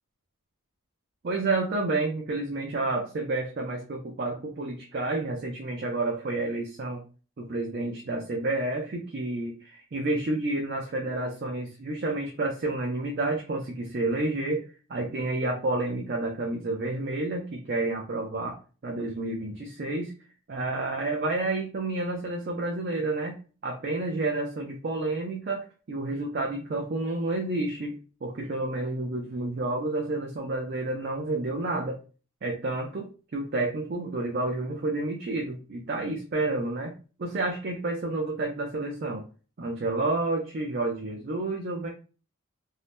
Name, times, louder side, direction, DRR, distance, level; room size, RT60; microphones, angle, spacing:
voice 1, 1.2-7.0 7.4-14.6 14.9-18.6 18.8-20.1 20.5-23.4 23.6-27.9 28.2-32.0 32.4-36.9 37.2-39.2 39.6-41.9, right 2 dB, 45° right, 1 dB, 0.4 m, -30 dB
2.7 x 2.1 x 3.2 m, 0.36 s
head